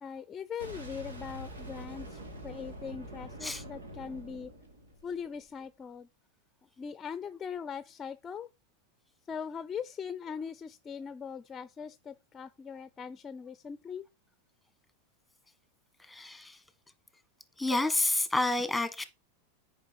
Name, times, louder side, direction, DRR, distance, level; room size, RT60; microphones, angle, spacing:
voice 1, 0.0-4.5 5.0-6.1 6.8-8.5 9.3-14.0, left 6 dB, 25° left, 0.6 m, -40 dB
Boom, 0.6-5.5, right 1 dB, 90° right, 2.5 m, -45 dB
voice 2, 16.0-16.6 17.6-19.0, left 2 dB, 5° left, 1.6 m, -29 dB
9.5 x 5.1 x 4.6 m
hypercardioid pair, 100°, 0 cm